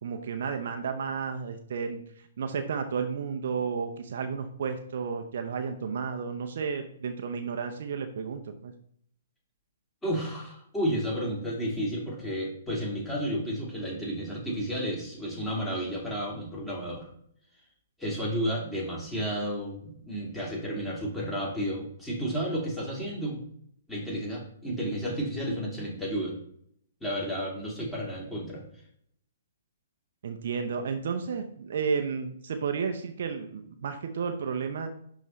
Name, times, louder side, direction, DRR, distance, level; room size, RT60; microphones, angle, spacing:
voice 1, 0.0-8.7 30.2-34.9, right 6 dB, 55° right, 6 dB, 0.7 m, -32 dB
voice 2, 10.0-17.1 18.0-23.4 23.9-26.4 27.0-28.6, equal, 10° left, -4 dB, 2.5 m, -32 dB
11.0 x 3.7 x 3.1 m, 0.65 s
figure-of-eight pair, 120°, 0 cm